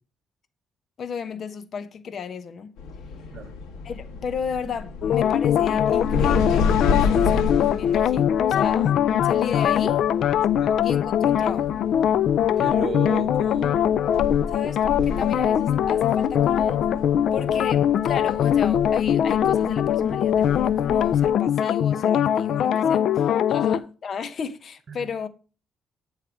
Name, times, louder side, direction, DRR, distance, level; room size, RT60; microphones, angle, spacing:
voice 1, 1.0-2.7 3.8-10.0 10.8-11.7 14.5-16.8 17.3-25.3, left 6 dB, 55° left, 0.8 m, -33 dB
sound 1, 2.8-21.3, left 4 dB, 90° left, 1.6 m, -32 dB
sound 2, 5.0-23.8, left 9 dB, 70° left, 0.3 m, -21 dB
voice 2, 12.6-13.9 23.6-23.7 24.9-25.1, right 6 dB, 50° right, 0.9 m, -34 dB
9.3 x 3.2 x 6.0 m
cardioid pair, 90°, 0 cm